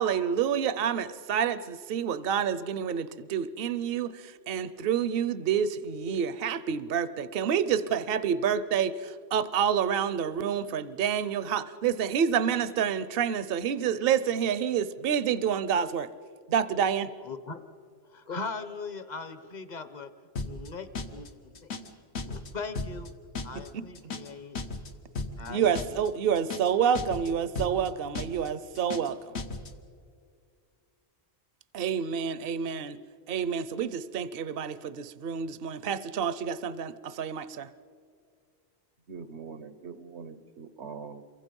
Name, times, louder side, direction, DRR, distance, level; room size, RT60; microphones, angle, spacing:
voice 1, 0.0-16.1 16.5-17.1 23.5-23.9 25.5-29.4 31.7-33.0 33.3-37.7, right 8 dB, 60° right, 15 dB, 0.9 m, -28 dB
voice 2, 17.2-17.6 18.1-20.1 20.4-21.3 21.6-21.7 22.2-23.1 23.4-24.6 25.4-25.8, left 4 dB, 45° left, 11 dB, 1.2 m, -39 dB
sound 1, 20.4-20.7 21.0-21.3 21.6-21.9 22.2-22.5 22.8-23.1 23.4-23.7 24.0-24.3 24.6-24.9 25.2-25.5 25.8-26.1 26.4-26.7 27.0-27.3 27.6-27.9 28.2-28.5 28.8-29.1 29.4-29.7, left 3 dB, 75° left, 1.6 m, -35 dB
voice 3, 39.1-41.2, right 5 dB, 90° right, 12 dB, 1.4 m, -43 dB
28.0 x 24.0 x 5.4 m, 2.2 s
omnidirectional pair, 1.1 m